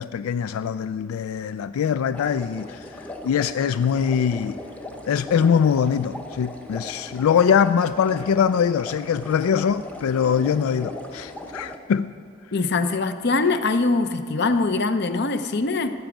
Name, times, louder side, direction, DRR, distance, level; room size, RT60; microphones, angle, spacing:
voice 1, 0.0-4.6 5.1-12.1, left 7 dB, 90° left, 0.3 m, -22 dB
sound 1, 2.1-11.8, left 1 dB, 5° left, 0.7 m, -38 dB
voice 2, 12.5-15.9, left 3 dB, 50° left, 0.7 m, -22 dB
14.5 x 6.0 x 8.8 m
head